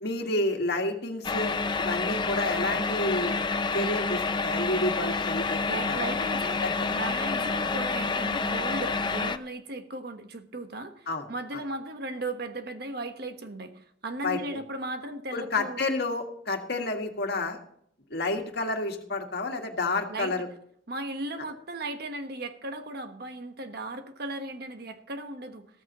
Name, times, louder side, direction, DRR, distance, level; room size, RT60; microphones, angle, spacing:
voice 1, 0.0-3.4 3.7-5.6 5.9-6.1 6.6-6.9 11.1-11.2 11.5-11.6 14.2-14.6 15.3-17.6 18.1-20.5, left 2 dB, 60° left, 3 dB, 1.9 m, -30 dB
sound 1, 1.2-9.4, left 4 dB, 25° left, 0.5 m, -28 dB
voice 2, 5.7-6.6 6.9-15.8 20.1-20.5 20.9-25.7, right 2 dB, 55° right, 7 dB, 1.3 m, -36 dB
15.0 x 14.0 x 3.0 m, 0.65 s
head